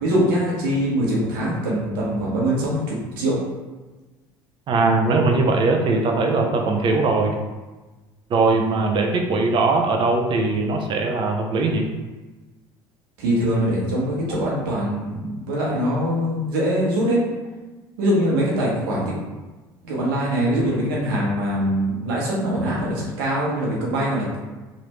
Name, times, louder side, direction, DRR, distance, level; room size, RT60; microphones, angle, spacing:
voice 1, 0.0-3.4 13.2-17.2 18.0-19.1 19.8-24.4, equal, 80° right, -4 dB, 1.1 m, -23 dB
voice 2, 4.7-7.3 8.3-11.9, right 3 dB, 45° right, 2 dB, 0.6 m, -20 dB
3.2 x 2.5 x 3.1 m, 1.2 s
hypercardioid pair, 75°, 12 cm